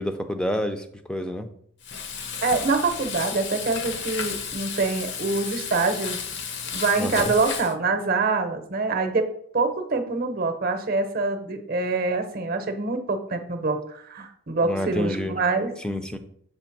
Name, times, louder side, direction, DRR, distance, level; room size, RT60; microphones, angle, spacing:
voice 1, 0.0-1.5 7.0-7.3 14.6-15.4 15.8-16.2, equal, 5° left, 7 dB, 0.5 m, -28 dB
Frying (food), 1.8-7.7, left 6 dB, 55° left, 0.7 m, -33 dB
voice 2, 2.4-6.2 6.7-9.3 9.5-15.7, right 3 dB, 40° right, 8 dB, 0.8 m, -25 dB
7.0 x 3.3 x 5.9 m, 0.66 s
head